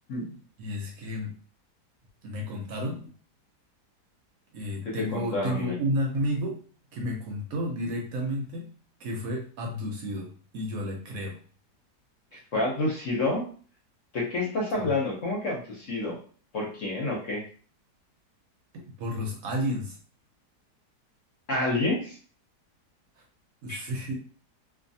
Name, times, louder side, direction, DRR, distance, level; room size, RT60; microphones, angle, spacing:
voice 1, 0.6-1.4 2.2-3.1 4.5-6.6 6.9-8.7 9.0-11.4 12.3-12.4 14.8-14.9 19.0-20.0 23.6-24.1, equal, 70° right, 0 dB, 0.9 m, -31 dB
voice 2, 4.8-5.8 12.5-13.4 14.1-16.2 16.5-17.4 21.5-22.2 23.7-23.8, left 2 dB, 55° left, -2 dB, 1.0 m, -28 dB
2.6 x 2.4 x 2.6 m, 0.43 s
omnidirectional pair, 1.8 m